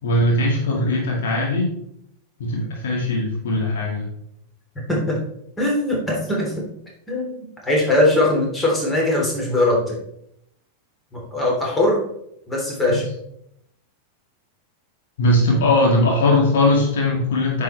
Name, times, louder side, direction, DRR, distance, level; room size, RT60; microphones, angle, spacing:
voice 1, 0.0-1.7 2.4-4.1 12.9-13.0 15.2-17.6, left 1 dB, 60° left, -2 dB, 2.0 m, -19 dB
voice 2, 4.7-5.2 5.6-6.6 7.1-10.0 11.1-12.0 12.5-13.0, left 1 dB, 10° left, -3 dB, 3.3 m, -21 dB
9.1 x 6.8 x 3.3 m, 0.74 s
figure-of-eight pair, 90°, 0 cm